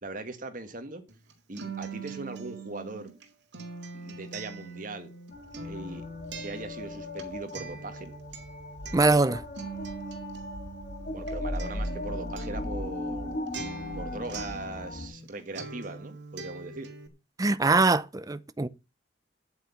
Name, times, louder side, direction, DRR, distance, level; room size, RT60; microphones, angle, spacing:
voice 1, 0.0-1.0 1.5-3.1 3.9-5.1 5.6-6.0 6.4-8.1 11.1-13.5 13.9-16.9, right 2 dB, 50° right, 1.7 m, -40 dB
Acoustic guitar, 1.1-15.3 15.5-17.1, right 3 dB, 75° right, 2.0 m, -42 dB
sound 1, 5.3-15.1, left 1 dB, 50° left, 4.4 m, -37 dB
voice 2, 8.9-9.4 17.4-18.7, right 3 dB, 20° right, 0.5 m, -23 dB
9.2 x 8.2 x 7.1 m
head